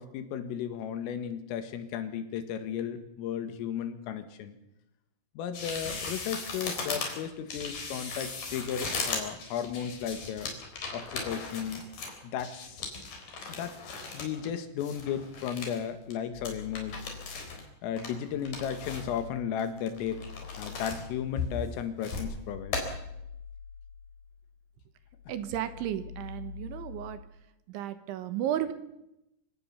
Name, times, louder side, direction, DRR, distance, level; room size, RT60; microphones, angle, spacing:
voice 1, 0.0-4.6 5.4-10.5 10.9-11.8 12.2-12.9 13.5-13.7 14.1-16.9 17.8-20.2 20.6-22.8, left 8 dB, 85° left, 10 dB, 4.4 m, -35 dB
sound 1, 5.5-14.5 14.8-15.8 16.1-16.2 16.5-17.6 18.0-19.2 19.6-21.0 21.4-22.3 22.7-22.8, left 4 dB, 45° left, 5.2 m, -37 dB
sound 2, 16.3-17.8 18.2-24.7 25.0-27.3, left 7 dB, 70° left, 2.4 m, -46 dB
voice 2, 25.3-27.2 27.7-28.7, right 11 dB, 75° right, 11 dB, 3.4 m, -33 dB
26.5 x 17.5 x 7.1 m, 0.87 s
omnidirectional pair, 5.8 m